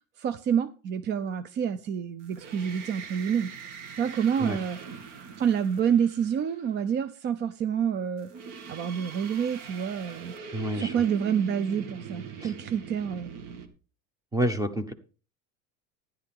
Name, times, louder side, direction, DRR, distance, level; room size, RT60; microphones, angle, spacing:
voice 1, 0.2-4.8 5.4-8.3 8.7-10.3 10.7-13.3, right 8 dB, 30° right, 0.5 m, -28 dB
sound 1, 2.2-6.7 8.2-13.7, right 6 dB, 55° right, 2.1 m, -42 dB
voice 2, 10.5-11.0 12.4-12.5 14.3-14.9, right 1 dB, 10° right, 1.0 m, -28 dB
13.0 x 10.5 x 3.6 m
cardioid pair, 160°, 38 cm